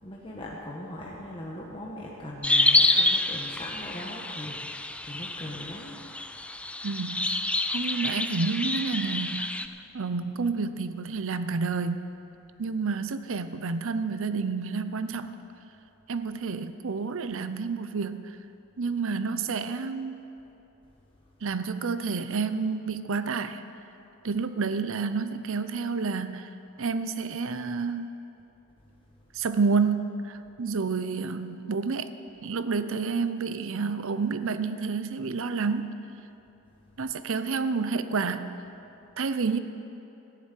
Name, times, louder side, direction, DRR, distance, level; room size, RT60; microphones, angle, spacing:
voice 1, 0.0-6.0, left 1 dB, 25° left, -4 dB, 1.3 m, -40 dB
sound 1, 2.4-9.7, left 2 dB, 5° left, 0.3 m, -27 dB
voice 2, 6.8-7.4 7.7-9.7 9.9-12.0 12.6-15.4 16.1-18.4 18.8-20.2 21.4-23.6 24.2-26.5 26.8-28.2 29.3-32.1 32.4-36.0 37.0-38.5 39.2-39.6, right 4 dB, 60° right, 11 dB, 0.6 m, -29 dB
14.0 x 7.5 x 9.2 m, 2.9 s
head